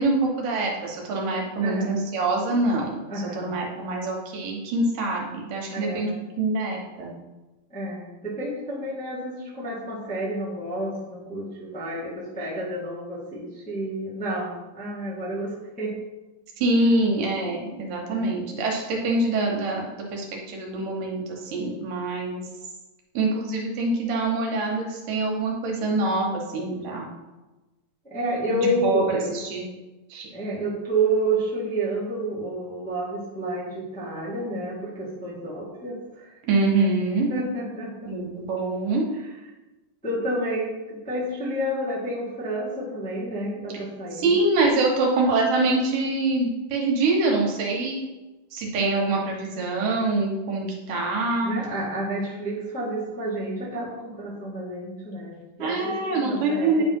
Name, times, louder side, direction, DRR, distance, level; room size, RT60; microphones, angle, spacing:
voice 1, 0.0-2.9 3.2-6.1 6.4-7.1 16.6-22.4 23.1-27.1 28.6-29.7 30.1-30.3 36.5-37.3 38.1-39.0 44.2-48.0 48.5-51.6 55.6-56.8, right 2 dB, 75° right, -1 dB, 2.7 m, -25 dB
voice 2, 1.6-1.9 3.1-3.5 5.7-6.2 7.7-15.9 18.1-18.4 28.0-29.3 30.3-36.3 37.3-38.1 40.0-44.4 51.4-56.8, right 1 dB, 5° left, -8 dB, 1.1 m, -30 dB
9.5 x 3.4 x 5.3 m, 1.1 s
omnidirectional pair, 4.0 m